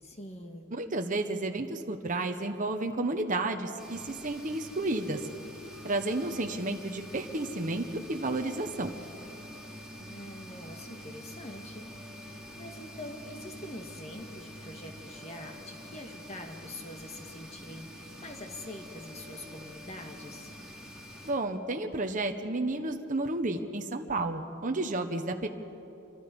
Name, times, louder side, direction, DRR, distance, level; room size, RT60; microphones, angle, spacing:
voice 1, 0.0-0.7 10.0-11.9 12.1-20.5, left 1 dB, 30° left, 3 dB, 1.7 m, -45 dB
voice 2, 0.7-5.2 5.8-8.9 21.2-25.5, right 2 dB, 35° right, 5 dB, 1.0 m, -31 dB
sound 1, 3.8-21.3, equal, 5° right, 3.6 m, -46 dB
27.0 x 25.0 x 5.3 m, 2.9 s
head